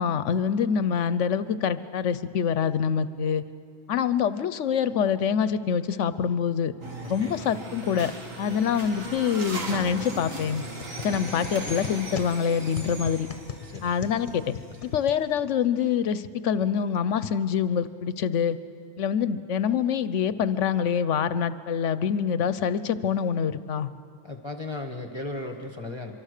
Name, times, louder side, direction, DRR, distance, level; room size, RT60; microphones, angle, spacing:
voice 1, 0.0-3.4 3.9-6.7 7.1-8.1 8.4-10.6 11.0-13.3 13.8-14.5 14.8-18.6 19.0-23.9, left 7 dB, 70° left, 14 dB, 1.0 m, -25 dB
sound 1, 6.8-14.9, right 2 dB, 90° right, 2.7 m, -38 dB
sound 2, 10.6-15.7, left 7 dB, 45° left, 1.1 m, -39 dB
voice 2, 13.6-13.9 14.8-14.9 24.2-26.1, left 2 dB, 20° left, 4 dB, 1.2 m, -36 dB
24.5 x 24.0 x 6.6 m, 2.5 s
omnidirectional pair, 1.3 m